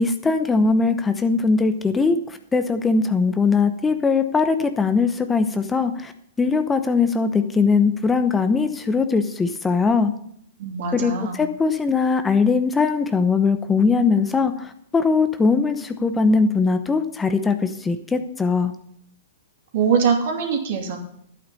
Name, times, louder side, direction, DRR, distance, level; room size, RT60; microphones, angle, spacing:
voice 1, 0.0-6.1 6.4-10.1 10.9-18.7, left 4 dB, 15° left, 9 dB, 0.8 m, -20 dB
voice 2, 10.6-11.4 19.7-21.0, right 6 dB, 60° right, 2 dB, 2.8 m, -22 dB
11.5 x 8.9 x 5.5 m, 0.69 s
hypercardioid pair, 110°, 0 cm